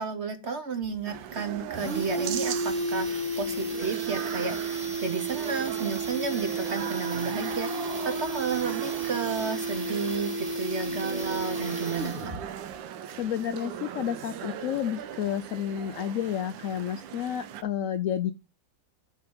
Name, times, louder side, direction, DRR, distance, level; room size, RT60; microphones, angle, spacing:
voice 1, 0.0-12.4, right 4 dB, 50° right, 8 dB, 0.9 m, -32 dB
sound 1, 0.8-0.9 1.2-1.3 1.6-12.4 12.7-12.8, right 2 dB, 20° right, 1.8 m, -32 dB
sound 2, 1.1-17.6, right 10 dB, 85° right, 1.4 m, -39 dB
voice 2, 13.1-18.3, left 10 dB, 90° left, 10 dB, 0.7 m, -30 dB
10.5 x 3.7 x 6.0 m, 0.29 s
omnidirectional pair, 2.0 m